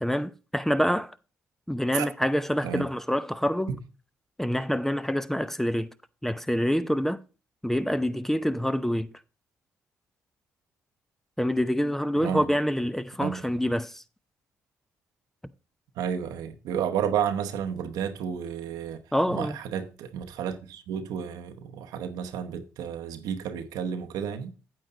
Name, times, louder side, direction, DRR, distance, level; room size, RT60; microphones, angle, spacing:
voice 1, 0.0-1.2 1.7-3.7 4.4-5.9 6.2-7.2 7.6-9.1 11.4-14.0 19.1-19.6, equal, 5° left, 0.6 m, -26 dB
voice 2, 16.0-19.0 19.3-24.5, right 8 dB, 85° right, 0.9 m, -31 dB
8.8 x 7.9 x 3.9 m
supercardioid pair, 60°, 6 cm